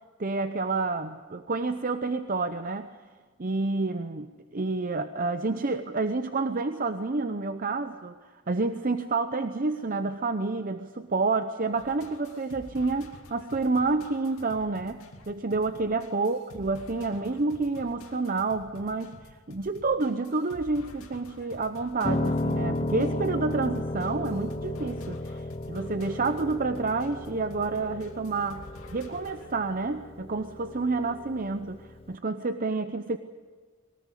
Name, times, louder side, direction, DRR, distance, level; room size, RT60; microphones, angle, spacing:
voice 1, 0.2-2.9 3.4-19.2 19.5-33.2, right 3 dB, 40° right, 9 dB, 0.7 m, -29 dB
sound 1, 11.8-29.5, left 2 dB, 75° left, 2.5 m, -49 dB
Piano, 22.0-32.1, left 2 dB, 25° left, 0.7 m, -34 dB
22.5 x 19.0 x 8.3 m, 1.5 s
head